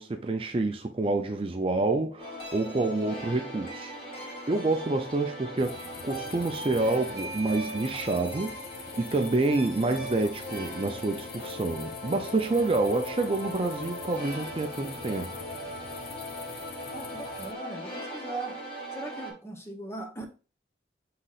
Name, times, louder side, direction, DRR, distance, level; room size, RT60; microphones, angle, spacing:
voice 1, 0.0-8.6 9.0-15.5, right 2 dB, 30° right, 0.4 m, -28 dB
sound 1, 2.2-19.3, equal, 30° left, 1.4 m, -39 dB
sound 2, 5.6-17.5, left 7 dB, 55° left, 0.4 m, -46 dB
Bell / Doorbell, 6.5-11.6, right 1 dB, 60° right, 0.9 m, -45 dB
voice 2, 16.9-18.6 18.9-20.3, right 2 dB, 15° left, 0.7 m, -39 dB
5.8 x 3.8 x 2.4 m
head